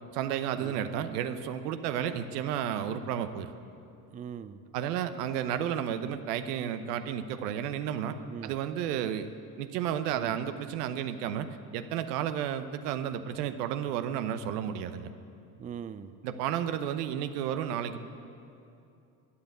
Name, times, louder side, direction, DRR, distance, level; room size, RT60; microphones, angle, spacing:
voice 1, 0.1-3.5 4.7-8.2 8.4-9.3 9.6-11.5 11.7-15.1 16.2-18.0, right 9 dB, 80° right, 10 dB, 0.9 m, -32 dB
voice 2, 4.1-4.6 8.3-8.5 10.1-10.3 15.6-16.1, right 8 dB, 20° right, 12 dB, 0.4 m, -41 dB
13.0 x 8.5 x 8.1 m, 2.7 s
hypercardioid pair, 75°, 47 cm